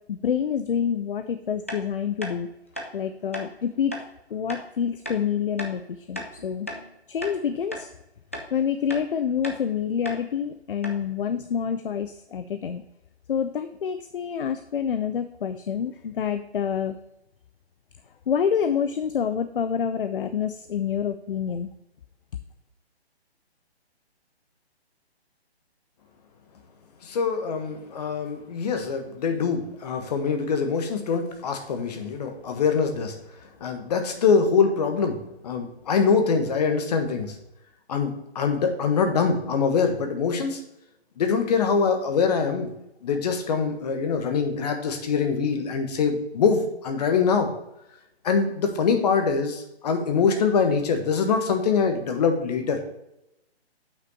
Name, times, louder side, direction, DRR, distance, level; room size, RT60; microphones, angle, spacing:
voice 1, 0.1-2.5 2.9-4.0 4.3-6.7 7.1-7.9 8.5-12.8 13.3-17.0 18.3-21.7, left 7 dB, 55° left, 10 dB, 0.6 m, -27 dB
sound 1, 1.7-1.8 2.2-2.3 2.7-2.9 3.3-3.5 3.9-4.1 4.5-4.6 5.1-5.2 5.6-5.8 6.2-6.9 7.2-7.4 7.7-7.9 8.3-8.5 8.9-9.1 9.4-9.6 10.1-10.2 10.5-10.6 10.8-11.0, equal, 15° left, 0.3 m, -35 dB
voice 2, 27.0-33.1 33.6-37.4 37.9-40.6 41.2-42.7 43.0-47.5 48.2-52.8, left 5 dB, 40° left, 5 dB, 1.4 m, -24 dB
7.6 x 6.0 x 4.4 m, 0.86 s
figure-of-eight pair, 140°, 33 cm